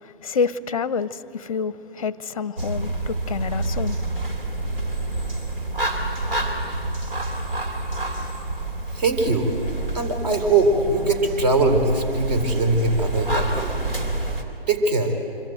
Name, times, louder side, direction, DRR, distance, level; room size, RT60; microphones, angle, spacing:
voice 1, 0.0-4.0, left 5 dB, 35° left, 0.7 m, -28 dB
sound 1, 2.6-14.4, right 2 dB, 65° right, 3.7 m, -28 dB
voice 2, 8.9-9.5 9.9-13.7 14.7-15.1, right 2 dB, 45° right, 4.2 m, -21 dB
26.0 x 24.5 x 9.2 m
figure-of-eight pair, 140°, 30 cm